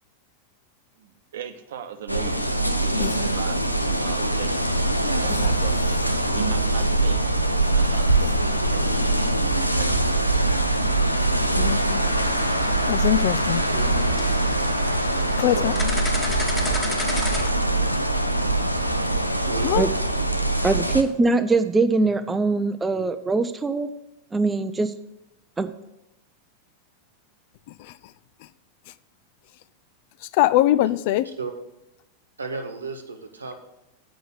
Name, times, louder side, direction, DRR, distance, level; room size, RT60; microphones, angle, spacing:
voice 1, 1.0-4.6 5.1-8.4 8.7-8.9 9.8-10.3, right 8 dB, 60° right, 9 dB, 0.8 m, -38 dB
sound 1, 2.1-21.0, right 1 dB, 90° left, 0.6 m, -23 dB
voice 2, 11.6-12.0 12.8-13.7 15.4-15.7 19.6-19.9 27.8-27.9 30.3-31.3, left 14 dB, 50° left, 16 dB, 0.4 m, -22 dB
sound 2, 12.0-17.5, equal, 5° left, 1.4 m, -33 dB
voice 3, 19.5-19.8 31.4-31.5 32.4-33.6, right 4 dB, 75° right, 6 dB, 1.2 m, -33 dB
voice 4, 20.4-23.9 24.3-24.9 25.6-25.7, right 3 dB, 10° right, 9 dB, 0.5 m, -22 dB
7.7 x 5.2 x 7.5 m, 0.92 s
figure-of-eight pair, 90°, 0 cm